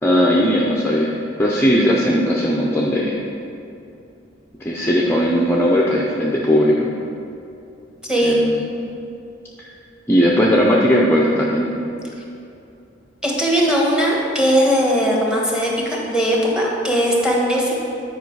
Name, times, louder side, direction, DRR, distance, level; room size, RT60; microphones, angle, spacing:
voice 1, 0.0-1.1 1.4-3.2 4.6-6.9 8.2-8.7 10.1-11.7, equal, 15° left, -3 dB, 0.6 m, -17 dB
voice 2, 13.2-17.7, equal, 5° right, -3 dB, 1.3 m, -19 dB
9.4 x 5.0 x 4.7 m, 2.6 s
head